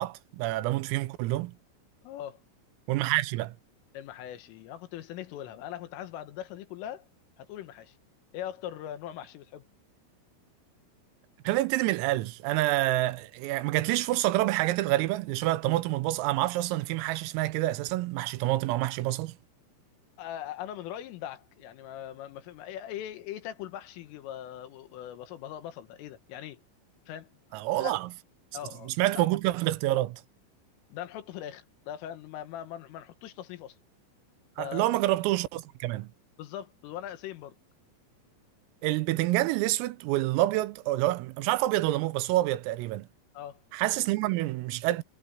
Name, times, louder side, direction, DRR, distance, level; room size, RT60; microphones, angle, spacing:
voice 1, 0.0-1.5 2.9-3.6 11.5-19.4 27.5-28.1 28.9-30.2 34.6-36.1 38.8-43.1 43.7-45.0, right 17 dB, 85° right, 3.5 m, -27 dB
voice 2, 2.0-2.4 3.9-7.1 7.4-8.0 8.3-9.6 20.2-26.6 27.1-27.3 27.8-28.0 28.5-29.3 30.9-33.8 34.6-35.0 36.4-37.6 43.4-43.6, left 11 dB, 75° left, 4.0 m, -40 dB
omnidirectional pair, 6.0 m